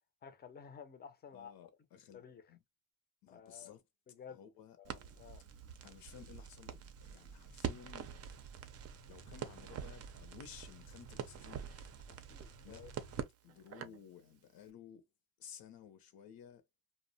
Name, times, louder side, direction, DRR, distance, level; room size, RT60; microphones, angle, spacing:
voice 1, 0.2-1.7 2.1-2.4 3.3-3.7 4.1-4.4 4.8-5.4 12.1-12.9, left 7 dB, 25° left, 0.5 m, -53 dB
voice 2, 1.3-2.6 3.2-3.8 4.3-4.8 5.8-8.3 9.1-11.9 12.6-12.9 13.4-15.1 15.4-16.6, left 8 dB, 65° left, 0.7 m, -55 dB
Crackle, 4.8-14.1, right 8 dB, 40° right, 0.4 m, -46 dB
2.5 x 2.0 x 2.6 m
cardioid pair, 140°, 38 cm